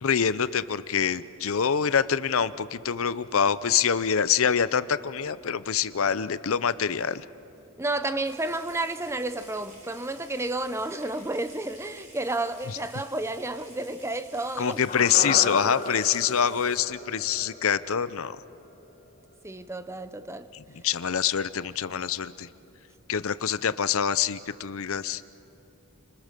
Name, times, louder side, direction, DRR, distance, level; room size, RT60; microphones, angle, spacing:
voice 1, 0.0-7.2 14.6-18.4 20.5-22.5 23.1-25.3, left 7 dB, 70° left, 0.6 m, -25 dB
voice 2, 7.8-14.8 19.4-20.5, right 2 dB, 10° right, 0.6 m, -31 dB
Water tap faucet / Sink (filling or washing) / Trickle dribble, 8.2-16.8, right 1 dB, 35° right, 7.4 m, -52 dB
sound 1, 14.9-19.2 19.5-19.6, left 3 dB, 35° left, 1.3 m, -35 dB
30.0 x 26.0 x 6.7 m
head